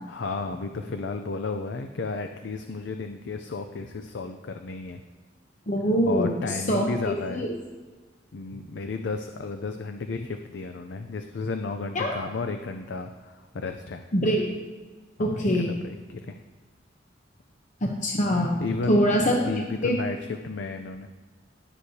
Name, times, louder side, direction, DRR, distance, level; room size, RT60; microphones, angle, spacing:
voice 1, 0.1-5.0 6.1-7.5 8.3-14.0 15.2-16.4 18.6-21.1, left 4 dB, 65° left, 6 dB, 0.5 m, -33 dB
voice 2, 5.7-7.5 11.9-12.1 14.1-14.4 15.2-15.7 17.8-19.4 19.8-20.0, equal, 40° left, 0 dB, 0.8 m, -24 dB
17.0 x 6.4 x 2.8 m, 1.3 s
head